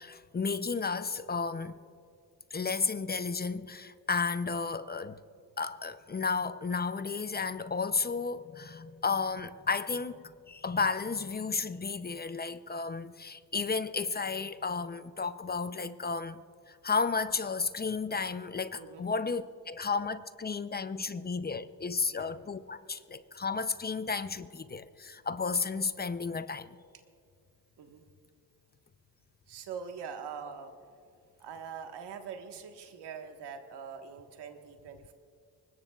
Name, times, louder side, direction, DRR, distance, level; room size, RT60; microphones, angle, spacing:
voice 1, 0.0-1.8 2.5-5.2 5.6-26.8, left 4 dB, 25° left, 0.5 m, -33 dB
voice 2, 18.8-19.1 22.1-22.3 27.8-28.0 29.5-30.7 31.4-35.1, right 6 dB, 90° right, 1.5 m, -43 dB
24.0 x 20.5 x 2.4 m
cardioid pair, 90°, 40 cm